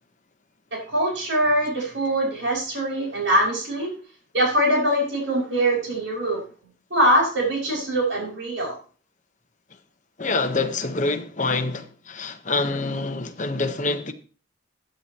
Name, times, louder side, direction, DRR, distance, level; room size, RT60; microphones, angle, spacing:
voice 1, 0.7-3.9 4.3-6.4 6.9-8.8, right 1 dB, 70° right, 6.0 m, -23 dB
voice 2, 10.2-14.1, left 3 dB, 40° left, 1.1 m, -26 dB
15.0 x 9.2 x 3.0 m
head